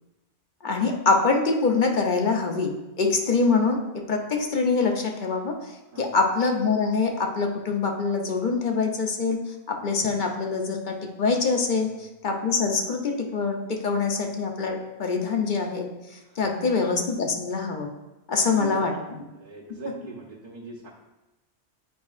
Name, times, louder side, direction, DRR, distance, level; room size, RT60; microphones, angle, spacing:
voice 1, 0.6-3.8 4.1-5.6 6.0-9.4 9.7-11.9 12.2-15.9 16.4-17.9 18.3-18.9, left 4 dB, 50° left, 2 dB, 0.8 m, -24 dB
voice 2, 16.2-16.8 18.4-20.9, right 3 dB, 50° right, -6 dB, 1.0 m, -41 dB
8.6 x 4.7 x 2.4 m, 1.0 s
omnidirectional pair, 1.1 m